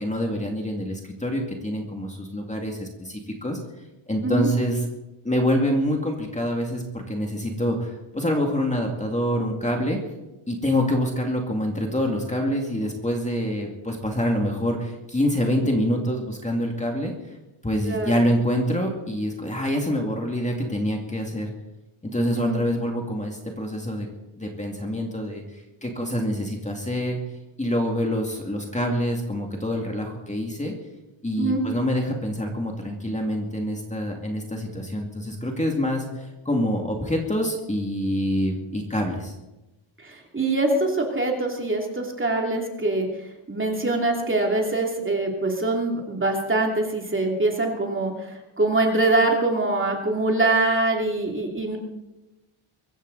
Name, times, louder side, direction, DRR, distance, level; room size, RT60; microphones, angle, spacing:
voice 1, 0.0-3.6 4.1-4.8 5.2-10.0 10.5-17.4 17.6-21.5 22.1-24.1 24.4-27.2 27.6-30.7 31.2-39.3, equal, 15° left, 1 dB, 2.3 m, -26 dB
voice 2, 17.9-18.2 22.2-22.6 31.4-31.6 40.0-43.1 43.5-51.8, right 2 dB, 25° right, 1 dB, 2.8 m, -24 dB
23.5 x 15.0 x 4.0 m, 1.0 s
wide cardioid pair, 160°, 50 cm